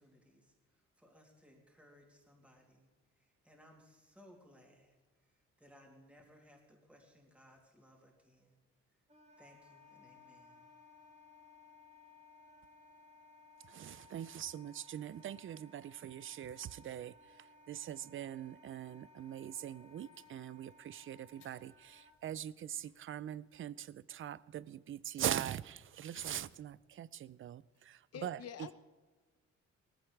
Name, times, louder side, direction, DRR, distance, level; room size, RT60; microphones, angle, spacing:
voice 1, 0.0-2.9 3.1-5.0 5.2-8.6 9.4-10.6, equal, 5° right, 0 dB, 2.9 m, -63 dB
Wind instrument woodwind instrument, 9.1-22.2, left 3 dB, 20° right, 2.1 m, -61 dB
voice 2, 13.6-28.7, right 11 dB, 45° right, 20 dB, 0.4 m, -42 dB
sound 1, 19.9-26.8, left 5 dB, 80° left, 3.2 m, -68 dB
voice 3, 28.1-28.8, left 9 dB, 55° left, 12 dB, 0.9 m, -46 dB
18.5 x 15.0 x 3.3 m, 1.3 s
cardioid pair, 90°, 30 cm